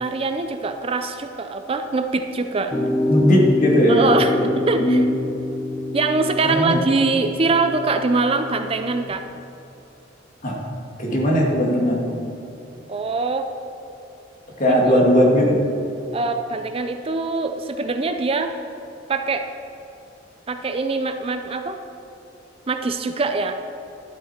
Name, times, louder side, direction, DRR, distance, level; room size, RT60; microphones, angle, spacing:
voice 1, 0.0-2.7 3.9-5.0 5.9-9.2 12.9-13.5 14.7-14.8 16.1-18.5 19.1-19.4 20.5-21.8 22.7-23.5, right 3 dB, 30° right, 7 dB, 0.4 m, -23 dB
sound 1, 2.7-9.1, left 2 dB, 20° left, 1.5 m, -26 dB
voice 2, 3.1-4.3 4.8-5.1 6.4-6.8 10.4-10.6 11.0-12.0 14.6-15.6, equal, 45° left, -2 dB, 2.2 m, -18 dB
12.5 x 8.5 x 4.4 m, 2.9 s
head